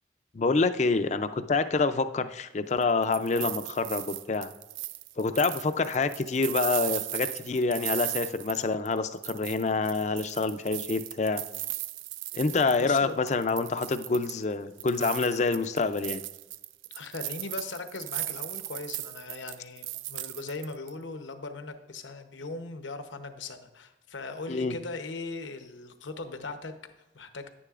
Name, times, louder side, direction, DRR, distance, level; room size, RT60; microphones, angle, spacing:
voice 1, 0.3-4.5 5.2-11.4 12.3-16.2 24.5-24.7, left 3 dB, 35° left, 10 dB, 0.4 m, -27 dB
sound 1, 2.8-9.0 9.2-13.0 13.3-14.4 14.8-20.9, right 16 dB, 85° right, 0.3 m, -37 dB
voice 2, 12.8-13.2 16.9-27.5, left 3 dB, 80° left, 7 dB, 0.8 m, -39 dB
9.9 x 9.8 x 2.5 m, 1.0 s
head